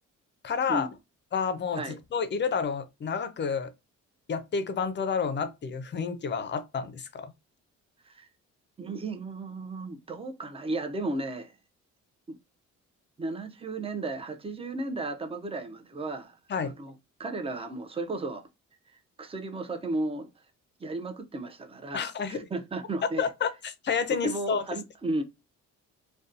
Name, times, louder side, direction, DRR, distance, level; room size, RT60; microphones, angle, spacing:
voice 1, 0.4-0.9 1.3-1.8 2.1-3.7 4.3-7.3 16.5-16.7 21.9-22.4 23.2-24.6, left 6 dB, 35° left, 0.5 m, -29 dB
voice 2, 8.8-11.5 12.3-12.4 13.2-16.4 16.6-18.5 18.9-20.3 20.8-23.2 24.2-25.2, right 2 dB, 20° right, 0.5 m, -34 dB
2.6 x 2.2 x 2.4 m
cardioid pair, 90°, 30 cm